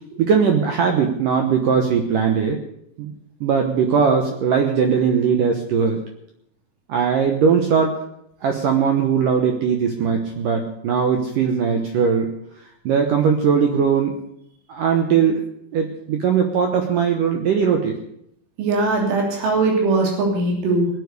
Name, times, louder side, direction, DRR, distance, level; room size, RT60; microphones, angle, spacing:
voice 1, 0.2-2.6 3.0-3.1 3.4-6.0 6.9-8.0 8.4-12.3 12.9-14.2 14.7-15.4 15.7-18.0, right 6 dB, 75° right, 4 dB, 2.0 m, -19 dB
voice 2, 18.6-20.9, right 3 dB, 90° right, 0 dB, 5.6 m, -20 dB
20.5 x 8.2 x 6.6 m, 0.75 s
omnidirectional pair, 5.4 m